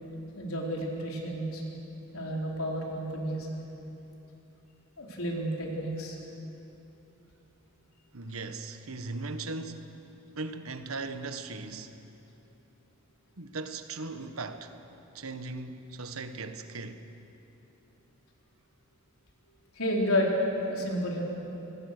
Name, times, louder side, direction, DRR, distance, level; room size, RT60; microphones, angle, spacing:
voice 1, 0.4-1.6 2.1-3.5 5.0-6.2 19.8-20.4 20.7-21.2, equal, 85° left, 4.1 m, -31 dB
voice 2, 8.1-10.0 10.3-11.9 13.4-14.7 15.1-17.0, right 3 dB, 80° right, 1.3 m, -38 dB
26.0 x 19.5 x 6.7 m
head